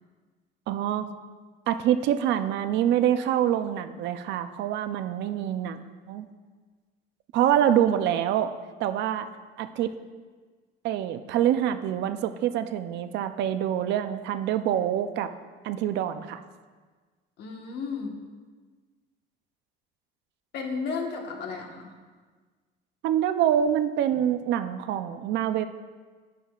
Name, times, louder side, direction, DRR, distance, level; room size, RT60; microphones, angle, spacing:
voice 1, 0.7-1.1 1.7-5.8 6.1-6.3 7.3-8.5 8.8-9.3 9.6-9.9 10.8-15.3 15.6-16.4 23.0-25.7, right 10 dB, 65° right, 10 dB, 0.5 m, -25 dB
voice 2, 17.4-18.1 20.5-21.9, left 4 dB, 60° left, 2 dB, 1.3 m, -33 dB
11.0 x 9.3 x 2.4 m, 1.4 s
cardioid pair, 160°, 20 cm